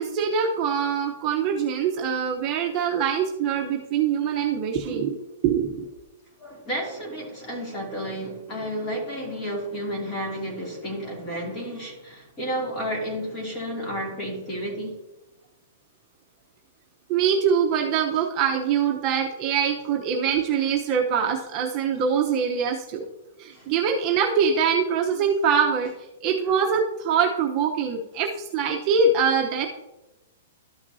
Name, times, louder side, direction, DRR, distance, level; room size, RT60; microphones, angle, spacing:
voice 1, 0.0-5.2 5.4-5.8 17.1-23.1 23.4-25.9 26.2-29.7, right 6 dB, 30° right, 0 dB, 0.9 m, -23 dB
voice 2, 6.4-15.0 23.5-23.7, equal, 20° left, -2 dB, 2.8 m, -31 dB
13.0 x 5.9 x 2.7 m, 0.98 s
hypercardioid pair, 155°, 0 cm